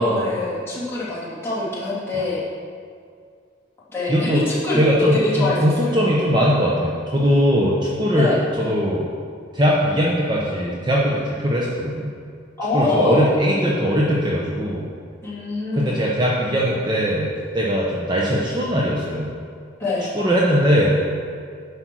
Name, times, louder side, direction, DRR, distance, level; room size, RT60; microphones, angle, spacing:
voice 1, 0.0-2.4 3.9-5.9 8.1-8.4 12.6-13.3 15.2-16.0 19.8-20.1, left 2 dB, 15° left, -9 dB, 2.7 m, -24 dB
voice 2, 4.1-4.4 4.8-8.3 8.6-9.1 9.5-12.1 12.7-14.9 15.7-19.3 20.1-21.1, equal, 25° right, -4 dB, 0.9 m, -20 dB
10.0 x 5.3 x 6.2 m, 2.2 s
head